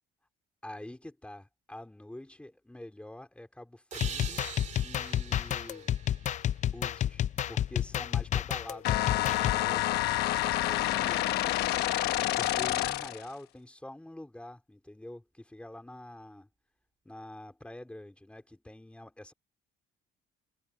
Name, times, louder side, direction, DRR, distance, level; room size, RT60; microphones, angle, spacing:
voice 1, 0.6-4.5 4.8-6.0 6.6-11.4 12.2-16.5 17.0-19.3, left 1 dB, 5° left, 4.5 m, -46 dB
sound 1, 3.9-9.6, left 11 dB, 45° left, 0.6 m, -30 dB
sound 2, 3.9-7.4, right 7 dB, 45° right, 2.5 m, -44 dB
sound 3, 8.8-13.3, left 15 dB, 80° left, 1.0 m, -28 dB
cardioid pair, 110°, 17 cm